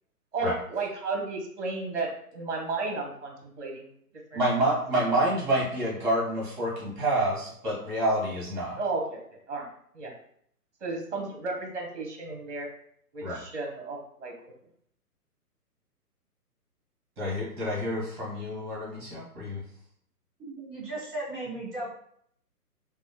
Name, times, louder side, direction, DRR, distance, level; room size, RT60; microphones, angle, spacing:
voice 1, 0.3-3.9 4.3-4.5 4.7-5.2 8.8-9.2 9.5-9.7 9.9-10.1 10.8-12.7 13.1-14.3, right 3 dB, 50° right, 2 dB, 0.9 m, -33 dB
voice 2, 4.3-8.8 13.2-13.4 17.2-19.6, right 1 dB, 30° right, -4 dB, 1.3 m, -28 dB
voice 3, 20.4-21.9, right 2 dB, ahead, -15 dB, 0.7 m, -36 dB
2.8 x 2.0 x 2.7 m, 0.66 s
figure-of-eight pair, 135°, 47 cm